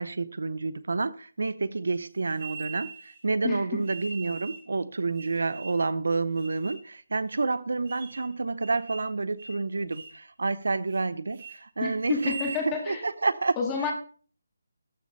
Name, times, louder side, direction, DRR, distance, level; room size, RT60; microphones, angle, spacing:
voice 1, 0.0-12.3 12.9-13.6, right 3 dB, 70° right, 0.7 m, -29 dB
sound 1, 2.4-3.2 3.8-4.7 5.1-5.9 6.4-6.9 7.3-7.4 7.9-8.3 8.6-9.1 9.4-9.6 9.9-10.2 10.6-11.0 11.3-11.6 12.1-12.7, right 5 dB, 35° right, 1.8 m, -42 dB
voice 2, 11.8-13.0 13.6-13.9, left 5 dB, 10° left, 1.9 m, -29 dB
13.5 x 6.4 x 4.3 m
hypercardioid pair, 175°, 0 cm